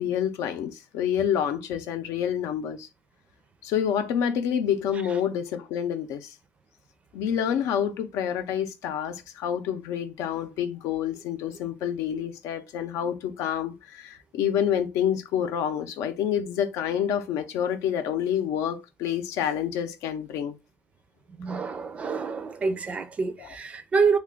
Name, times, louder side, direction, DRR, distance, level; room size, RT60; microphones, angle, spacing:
voice 1, 0.0-2.9 3.6-6.3 7.1-20.6 23.4-23.5, left 9 dB, 80° left, 0.6 m, -28 dB
voice 2, 21.4-24.2, right 5 dB, 25° right, 0.4 m, -27 dB
3.3 x 2.3 x 3.7 m
cardioid pair, 175°, 5 cm